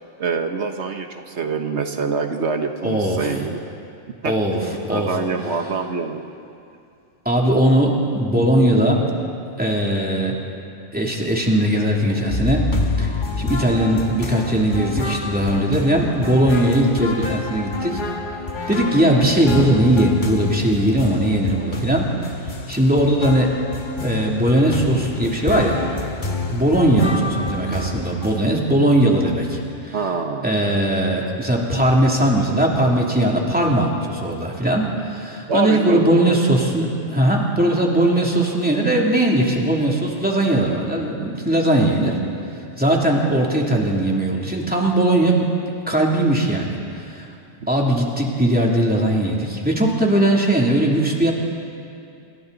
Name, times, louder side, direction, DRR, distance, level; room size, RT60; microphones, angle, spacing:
voice 1, 0.2-3.6 4.2-6.2 29.9-30.5 35.5-36.3, right 4 dB, 85° right, 5 dB, 1.5 m, -25 dB
voice 2, 2.8-3.4 4.2-5.2 7.2-9.0 9.6-10.4 10.9-12.7 13.0-18.0 18.7-22.1 22.7-23.5 24.0-25.8 26.5-30.0 30.4-42.2 42.8-45.5 45.9-47.3 47.7-51.3, right 1 dB, 10° right, -2 dB, 2.9 m, -19 dB
sound 1, 12.3-28.4, left 3 dB, 45° left, 1.5 m, -28 dB
28.5 x 27.0 x 4.0 m, 2.5 s
omnidirectional pair, 1.1 m